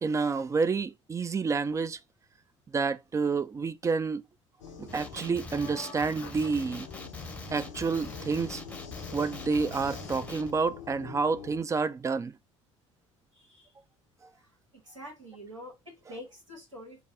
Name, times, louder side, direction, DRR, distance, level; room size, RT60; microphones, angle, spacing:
voice 1, 0.0-2.0 2.7-4.2 4.8-6.9 7.5-8.6 9.1-12.3, right 4 dB, 20° right, 0.3 m, -29 dB
sound 1, 4.6-11.6, left 6 dB, 80° left, 0.6 m, -45 dB
Male speech man speaking, 4.9-10.5, left 2 dB, 10° left, 0.7 m, -43 dB
voice 2, 13.3-13.7 14.4-14.5 14.8-17.0, equal, 85° right, 1.6 m, -46 dB
4.7 x 2.3 x 3.7 m
figure-of-eight pair, 55°, 16 cm